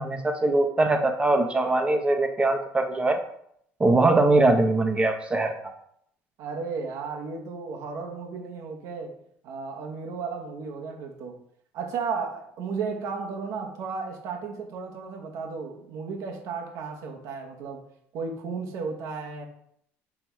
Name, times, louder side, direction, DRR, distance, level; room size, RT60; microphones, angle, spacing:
voice 1, 0.0-3.2 3.8-5.5, right 2 dB, 20° right, 4 dB, 0.9 m, -22 dB
voice 2, 6.4-9.2 9.4-11.4 11.7-17.8 18.1-19.5, right 5 dB, 70° right, 2 dB, 1.1 m, -34 dB
6.1 x 3.4 x 4.6 m, 0.70 s
cardioid pair, 115°, 6 cm